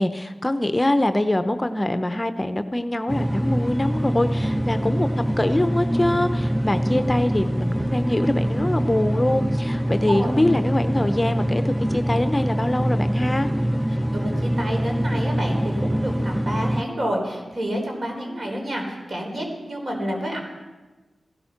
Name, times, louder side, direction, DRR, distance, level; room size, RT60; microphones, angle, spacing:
voice 1, 0.0-5.1 5.4-13.5, left 1 dB, 20° left, 9 dB, 0.8 m, -23 dB
sound 1, 3.1-16.8, equal, 10° right, 0.5 m, -24 dB
voice 2, 14.1-20.4, equal, 55° right, 1 dB, 4.1 m, -29 dB
16.5 x 12.5 x 5.9 m, 1.2 s
cardioid pair, 55°, 0 cm